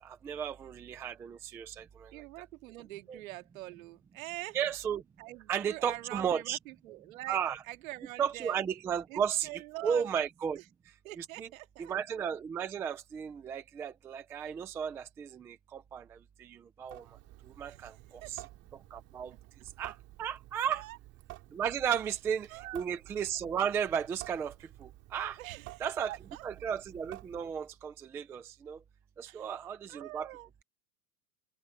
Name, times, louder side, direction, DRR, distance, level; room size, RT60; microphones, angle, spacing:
voice 1, 0.0-2.2 3.1-3.2 4.5-5.0 5.5-6.6 7.3-7.6 8.2-10.6 11.2-11.5 11.8-17.2 17.4-18.5 18.7-19.3 19.8-20.9 21.5-25.4 25.8-26.2 26.4-28.8 29.2-30.3, right 8 dB, 5° right, 0.4 m, -34 dB
voice 2, 2.1-4.6 5.2-7.4 7.7-8.6 9.1-10.1 11.0-11.9 17.7-17.8 18.2-18.4 20.7-21.0 22.5-22.8 25.4-26.4 29.3-29.5 29.9-30.5, right 17 dB, 60° right, 2.2 m, -44 dB
Water tap faucet / Sink (filling or washing) / Drip, 16.8-27.8, right 18 dB, 30° right, 3.5 m, -52 dB
supercardioid pair, 160°, 45 cm